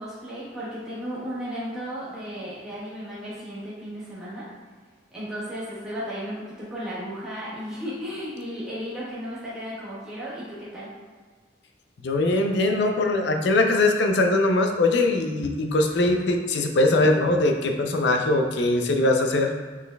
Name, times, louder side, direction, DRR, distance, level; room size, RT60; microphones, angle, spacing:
voice 1, 0.0-4.5 5.1-10.9, equal, 5° right, -11 dB, 1.3 m, -34 dB
voice 2, 12.0-19.5, left 2 dB, 65° left, 4 dB, 0.5 m, -21 dB
5.7 x 3.9 x 2.2 m, 1.4 s
head